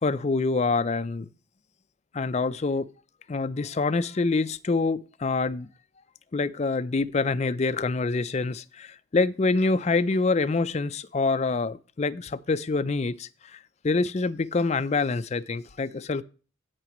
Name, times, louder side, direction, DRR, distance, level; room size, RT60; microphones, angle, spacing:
voice 1, 0.0-1.3 2.1-2.9 3.3-5.7 6.3-13.6 13.8-16.2, left 3 dB, 35° left, 0.4 m, -26 dB
16.5 x 5.9 x 3.0 m
head